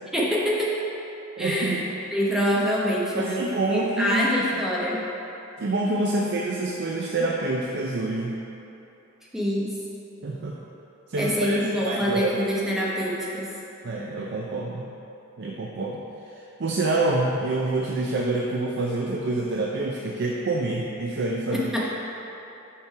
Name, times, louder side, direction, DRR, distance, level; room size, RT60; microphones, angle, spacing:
voice 1, 0.1-0.7 1.4-1.8 2.1-5.0 9.3-9.8 11.2-13.5 21.5-21.9, equal, ahead, -6 dB, 0.9 m, -25 dB
voice 2, 1.4-1.8 3.2-4.3 5.6-8.4 10.2-10.6 11.1-12.4 13.8-14.9 15.4-16.0 16.4-21.9, right 2 dB, 55° right, -2 dB, 0.5 m, -27 dB
5.5 x 5.2 x 4.6 m, 3.0 s
head